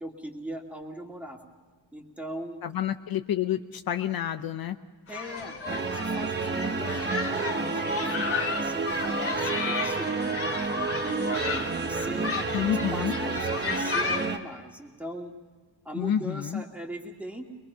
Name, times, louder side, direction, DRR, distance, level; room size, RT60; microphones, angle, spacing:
voice 1, 0.0-1.4 1.9-2.6 5.1-10.5 11.0-15.3 15.8-17.5, right 1 dB, 5° right, 1 dB, 2.4 m, -40 dB
voice 2, 2.6-4.8 12.5-13.1 15.9-16.6, left 10 dB, 55° left, 8 dB, 0.8 m, -29 dB
sound 1, 5.1-14.3, left 4 dB, 30° left, 2.3 m, -33 dB
sound 2, 5.7-14.4, right 4 dB, 25° right, 1.1 m, -30 dB
23.0 x 23.0 x 5.7 m, 1.4 s
cardioid pair, 140°, 43 cm